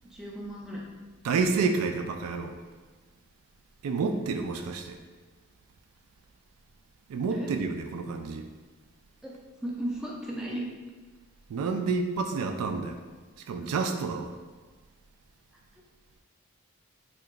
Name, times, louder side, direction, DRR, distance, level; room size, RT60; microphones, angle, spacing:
voice 1, 0.1-0.8 7.3-7.5 9.2-9.3 9.6-10.7, right 1 dB, ahead, -4 dB, 0.3 m, -35 dB
voice 2, 1.2-2.6 3.8-5.0 7.1-8.5 11.5-13.0 13.4-14.3, right 4 dB, 85° right, 6 dB, 0.3 m, -29 dB
2.9 x 2.3 x 3.7 m, 1.3 s
head